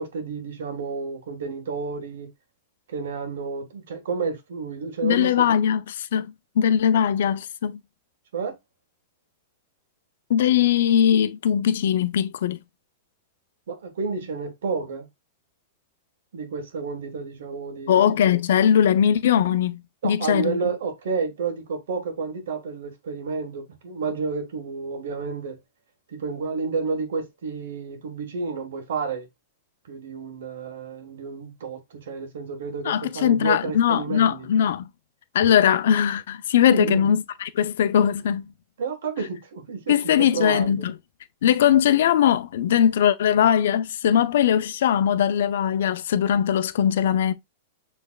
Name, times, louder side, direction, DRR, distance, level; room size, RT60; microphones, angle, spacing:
voice 1, 0.0-2.3 2.9-5.4 8.3-8.5 13.7-15.1 16.3-18.3 20.0-25.6 26.1-29.3 29.9-34.5 36.7-37.1 38.8-39.9 40.3-40.9, right 5 dB, 80° right, 1.4 m, -30 dB
voice 2, 5.0-7.8 10.3-12.6 17.9-20.6 32.8-34.9 35.3-38.5 39.9-40.9 41.4-47.3, left 9 dB, 75° left, 0.5 m, -20 dB
6.3 x 3.3 x 2.4 m
hypercardioid pair, 140°, 0 cm